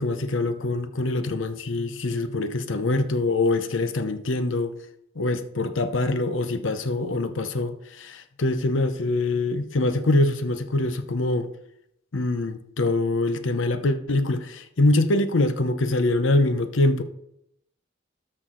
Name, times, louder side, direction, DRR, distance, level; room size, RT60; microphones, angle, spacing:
voice 1, 0.0-4.8 5.2-11.5 12.1-17.0, left 2 dB, 75° left, 0.8 m, -24 dB
12.5 x 6.1 x 3.8 m
head